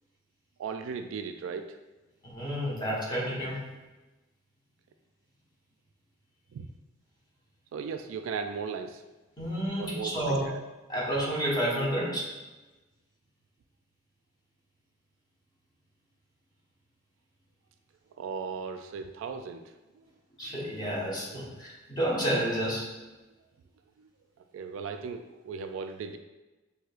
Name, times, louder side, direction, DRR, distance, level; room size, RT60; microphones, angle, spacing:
voice 1, 0.6-1.8 6.5-6.7 7.7-9.0 9.8-10.6 18.2-19.7 24.0-24.1 24.5-26.2, right 5 dB, 80° right, 7 dB, 0.3 m, -37 dB
voice 2, 2.2-3.6 9.4-10.5 10.9-12.3 20.4-22.9, equal, 20° left, -6 dB, 1.1 m, -30 dB
6.0 x 2.7 x 2.4 m, 1.1 s
head